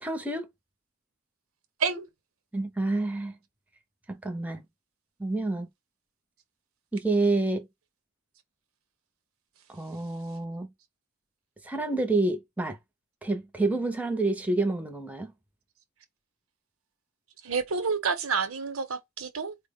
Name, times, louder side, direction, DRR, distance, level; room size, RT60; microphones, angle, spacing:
voice 1, 0.0-0.5 2.5-3.4 4.1-4.6 5.2-5.7 6.9-7.7 9.7-10.7 11.6-12.8 13.2-15.3, right 2 dB, 5° right, 0.6 m, -28 dB
voice 2, 17.4-19.6, right 5 dB, 80° right, 0.8 m, -29 dB
4.2 x 2.1 x 3.5 m
head